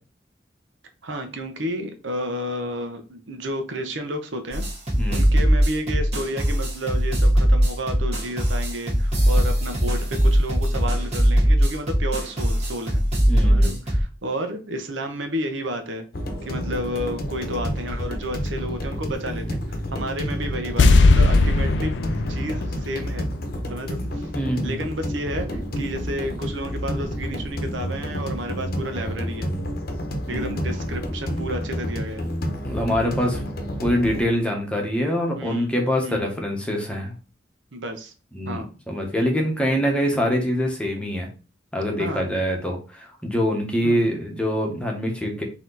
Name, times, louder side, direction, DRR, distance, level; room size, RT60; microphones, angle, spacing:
voice 1, 1.0-4.7 5.1-13.0 13.4-16.1 16.4-21.9 22.3-23.3 23.7-24.3 24.6-29.5 30.3-32.3 35.4-35.7 36.0-36.2 37.7-38.1 38.4-38.7 42.0-42.3 43.8-44.1, equal, 90° right, 6 dB, 0.8 m, -31 dB
sound 1, 4.5-14.0, equal, 35° right, 1.4 m, -20 dB
voice 2, 4.9-5.2 13.3-13.7 24.3-24.8 30.3-30.8 32.6-33.4 33.8-37.1 38.3-41.3 41.7-45.4, equal, 5° left, 1 dB, 1.0 m, -24 dB
sound 2, 16.1-34.2, equal, 55° left, 0.8 m, -30 dB
sound 3, 20.8-24.0 24.2-24.3, left 3 dB, 70° left, 0.4 m, -19 dB
4.2 x 2.9 x 3.9 m, 0.34 s
head